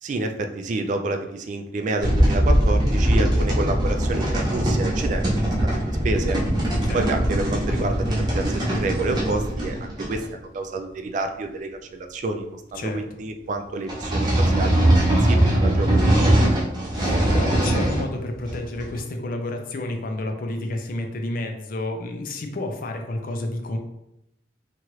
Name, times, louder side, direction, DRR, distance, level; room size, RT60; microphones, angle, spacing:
voice 1, 0.0-5.5 5.8-6.4 6.9-16.4, right 2 dB, 45° right, 5 dB, 0.3 m, -29 dB
sound 1, 2.0-10.3 13.9-18.1 18.5-19.0, right 1 dB, 25° right, 0.7 m, -21 dB
voice 2, 6.8-7.2 12.7-13.0 17.0-23.8, left 2 dB, 50° left, 4 dB, 0.4 m, -30 dB
3.0 x 2.4 x 3.0 m, 0.84 s
head